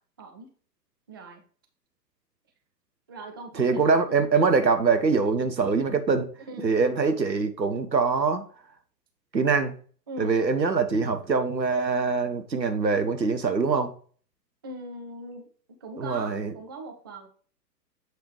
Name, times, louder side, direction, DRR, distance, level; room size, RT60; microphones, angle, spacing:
voice 1, 0.2-0.5 1.1-1.4 3.1-4.5 6.5-6.7 10.1-10.4 14.6-15.5 15.8-17.3, right 2 dB, 15° right, 0.4 m, -41 dB
voice 2, 3.5-6.3 6.6-8.4 9.3-9.8 10.2-13.9 16.0-16.5, right 4 dB, 85° right, 1.0 m, -23 dB
7.9 x 3.4 x 4.7 m
figure-of-eight pair, 105°, 50 cm